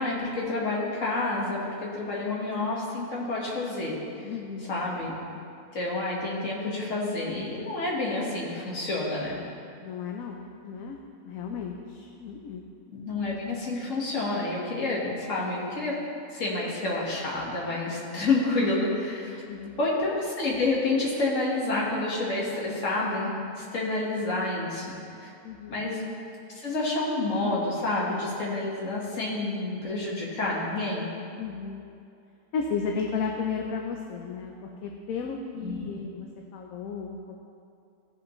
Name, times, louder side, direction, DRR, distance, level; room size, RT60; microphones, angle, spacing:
voice 1, 0.0-4.0 4.7-5.1 5.7-9.4 12.9-16.0 16.3-19.4 19.8-24.9 25.2-25.3 25.7-26.0 26.6-31.1 35.6-35.9, left 2 dB, 60° left, -4 dB, 1.9 m, -29 dB
voice 2, 4.2-4.8 9.8-11.0 11.2-12.7 19.5-19.8 25.4-25.8 31.4-31.8 32.5-37.4, left 5 dB, 75° left, 1 dB, 1.1 m, -34 dB
15.5 x 5.6 x 3.1 m, 2.5 s
omnidirectional pair, 1.6 m